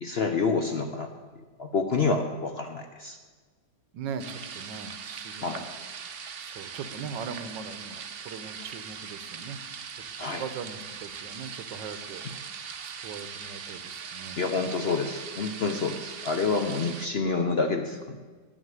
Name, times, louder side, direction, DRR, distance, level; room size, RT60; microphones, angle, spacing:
voice 1, 0.0-1.1 1.6-3.2 5.4-5.6 10.2-10.4 14.4-18.2, left 4 dB, 55° left, 5 dB, 0.7 m, -28 dB
voice 2, 3.9-5.7 6.4-9.6 10.2-12.2 12.8-14.4, right 6 dB, 90° right, 11 dB, 1.5 m, -40 dB
sound 1, 4.2-17.1, right 6 dB, 55° right, 0.6 m, -40 dB
10.5 x 6.5 x 9.1 m, 1.4 s
omnidirectional pair, 1.9 m